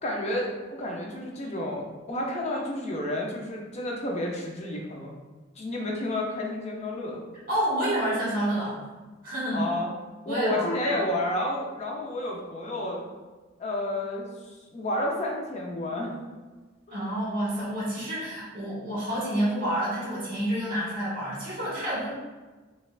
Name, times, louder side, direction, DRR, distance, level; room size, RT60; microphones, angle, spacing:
voice 1, 0.0-5.1 5.6-7.2 9.5-9.9 10.3-13.0 13.6-16.1 16.9-17.1, left 1 dB, 35° left, -1 dB, 0.5 m, -31 dB
voice 2, 7.5-8.8 9.2-9.6 10.3-10.9 16.9-22.1, right 1 dB, 45° right, -6 dB, 1.5 m, -29 dB
4.2 x 2.3 x 2.3 m, 1.3 s
head